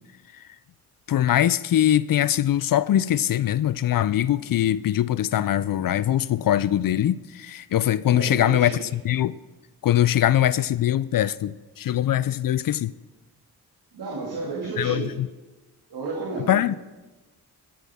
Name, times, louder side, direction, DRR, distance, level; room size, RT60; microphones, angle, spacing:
voice 1, 1.1-9.4 9.8-12.9 14.8-15.3 16.5-16.7, left 11 dB, 55° left, 0.5 m, -22 dB
voice 2, 8.1-8.9 13.9-15.2 15.9-16.8, right 3 dB, 70° right, 2.2 m, -32 dB
19.0 x 9.7 x 3.6 m
cardioid pair, 75°, 40 cm